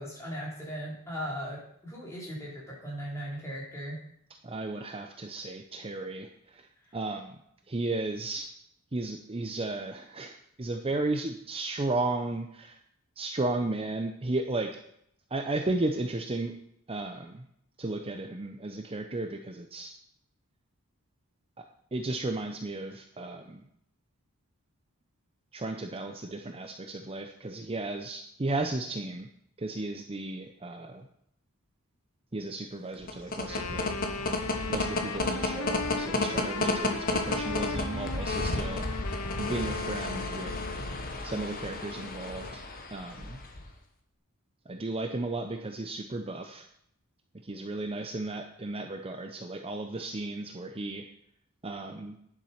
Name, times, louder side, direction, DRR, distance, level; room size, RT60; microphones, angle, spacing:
voice 1, 0.0-4.0 6.8-7.0, equal, 15° left, -4 dB, 4.0 m, -38 dB
voice 2, 4.4-7.4 7.7-8.5 8.9-12.8 13.2-14.7 15.3-16.5 16.9-17.5 17.8-19.9 21.6-21.7 21.9-23.6 25.5-29.3 29.6-31.1 32.3-34.0 34.7-38.8 39.4-40.6 41.2-42.6 42.9-43.4 44.7-46.6 47.4-51.1 51.6-52.2, right 2 dB, 25° right, 5 dB, 0.6 m, -34 dB
sound 1, 32.9-43.7, left 2 dB, 40° left, 1.3 m, -32 dB
Wind instrument woodwind instrument, 33.4-41.1, left 4 dB, 80° left, 0.8 m, -38 dB
10.5 x 7.4 x 5.8 m, 0.71 s
head